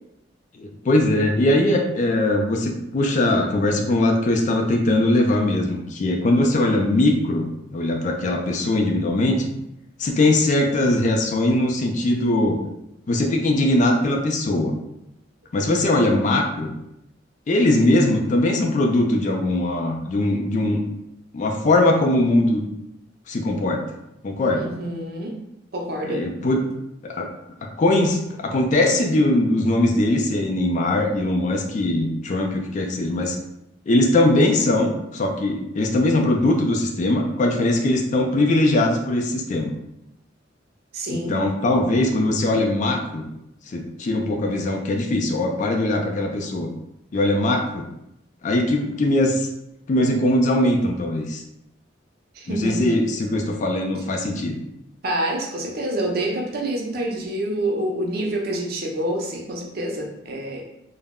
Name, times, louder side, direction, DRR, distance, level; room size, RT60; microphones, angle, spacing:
voice 1, 0.6-9.5 10.0-12.6 13.1-14.8 15.5-16.7 17.5-20.8 21.3-22.6 23.3-23.8 24.2-24.7 26.1-26.6 27.0-27.3 27.6-33.4 33.9-39.8 41.1-43.3 43.7-46.7 47.1-47.8 48.4-49.5 49.9-51.4 52.5-54.6, left 1 dB, 40° left, 2 dB, 0.3 m, -21 dB
voice 2, 24.5-25.4 25.7-26.3 40.9-41.4 52.3-53.1 55.0-60.6, right 1 dB, 55° right, 0 dB, 0.5 m, -27 dB
2.1 x 2.0 x 3.5 m, 0.84 s
head